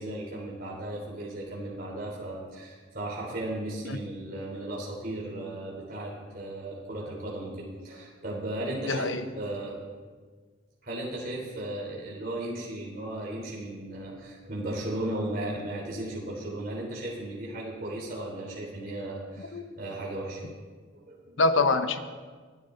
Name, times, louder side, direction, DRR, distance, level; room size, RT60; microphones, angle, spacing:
voice 1, 0.0-9.8 10.8-20.5 20.9-21.4, right 1 dB, 45° right, -4 dB, 3.6 m, -36 dB
voice 2, 8.9-9.2 19.5-19.6 21.4-22.0, left 3 dB, 80° left, 8 dB, 1.0 m, -24 dB
24.0 x 13.5 x 3.9 m, 1.5 s
head